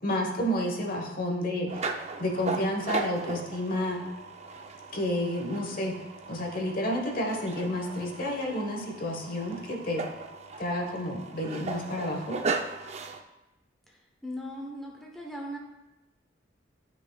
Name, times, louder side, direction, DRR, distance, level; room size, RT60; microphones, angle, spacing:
voice 1, 0.0-1.7 2.2-4.0 4.9-5.9 6.3-10.1 10.6-12.4, left 1 dB, 50° left, 1 dB, 1.1 m, -30 dB
sound 1, 1.7-13.2, right 4 dB, 35° right, 0.4 m, -37 dB
voice 2, 14.2-15.6, equal, ahead, -2 dB, 0.8 m, -38 dB
10.5 x 5.8 x 2.3 m, 0.98 s
head